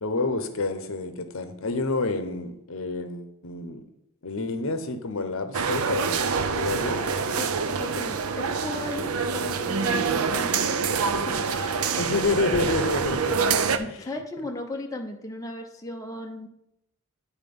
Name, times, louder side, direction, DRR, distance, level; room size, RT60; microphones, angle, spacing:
voice 1, 0.0-3.8 4.2-6.3 6.5-7.0 12.0-13.7, left 3 dB, 70° left, 8 dB, 0.8 m, -29 dB
sound 1, 5.5-13.8, right 5 dB, 80° right, 0.6 m, -26 dB
voice 2, 7.3-10.8 11.3-12.0 13.8-16.5, left 1 dB, 15° left, 2 dB, 0.7 m, -36 dB
9.7 x 4.4 x 5.3 m, 0.82 s
head